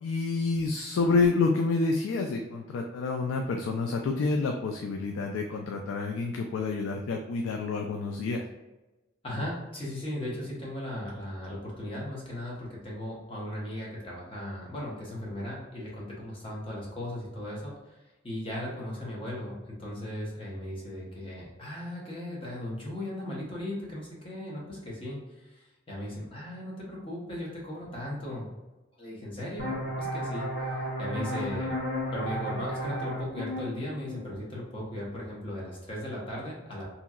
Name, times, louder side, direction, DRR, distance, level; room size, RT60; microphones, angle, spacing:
voice 1, 0.0-8.4, left 3 dB, 85° left, 3 dB, 0.3 m, -28 dB
voice 2, 9.2-28.5 29.0-30.5 31.0-31.8 32.1-36.9, left 1 dB, 25° left, -4 dB, 0.8 m, -37 dB
sound 1, 29.6-35.0, equal, 65° left, 0.7 m, -34 dB
2.9 x 2.7 x 2.4 m, 1.1 s
head